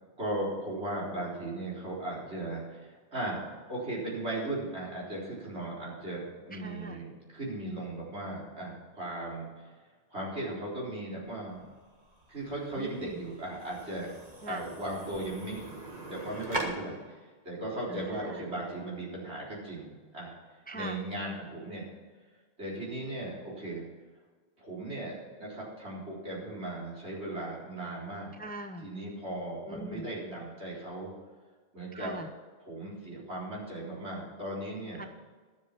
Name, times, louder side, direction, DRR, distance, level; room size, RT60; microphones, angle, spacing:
voice 1, 0.2-3.4 3.7-9.7 10.1-11.6 12.3-14.1 14.5-17.0 17.4-20.4 20.7-21.9 22.6-23.8 24.6-28.4 28.8-31.1 31.7-32.1 32.6-35.0, right 1 dB, 85° right, -6 dB, 4.4 m, -37 dB
voice 2, 6.6-7.0 12.8-13.1 14.4-14.6 17.9-18.4 20.7-21.0 28.4-28.8 29.7-30.0 31.9-32.3 35.0-35.1, right 1 dB, 10° left, 7 dB, 0.6 m, -41 dB
sound 1, 11.2-16.6, right 2 dB, 45° right, 1.8 m, -42 dB
12.5 x 7.7 x 5.9 m, 1.4 s
omnidirectional pair, 1.1 m